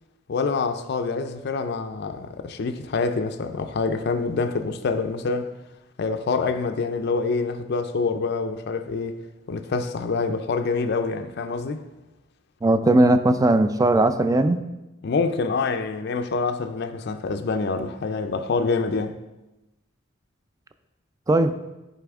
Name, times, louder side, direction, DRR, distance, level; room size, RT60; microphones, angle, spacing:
voice 1, 0.3-5.5 6.0-9.2 9.5-11.8 15.0-19.2, left 4 dB, 55° left, 0.4 m, -26 dB
voice 2, 12.6-14.6 21.3-21.5, right 2 dB, 15° right, 0.3 m, -18 dB
10.5 x 4.2 x 3.5 m
head